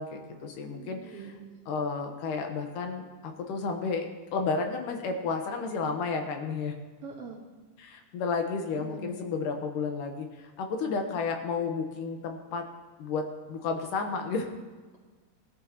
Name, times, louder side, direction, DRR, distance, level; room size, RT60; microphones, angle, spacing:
voice 1, 0.0-1.2 1.7-4.1 4.3-6.7 7.8-12.6 13.0-14.5, left 4 dB, 70° left, 4 dB, 2.5 m, -32 dB
voice 2, 0.7-1.7 7.0-7.4 8.8-9.1, right 5 dB, 55° right, -1 dB, 1.9 m, -43 dB
20.0 x 13.0 x 3.0 m, 1.4 s
omnidirectional pair, 4.0 m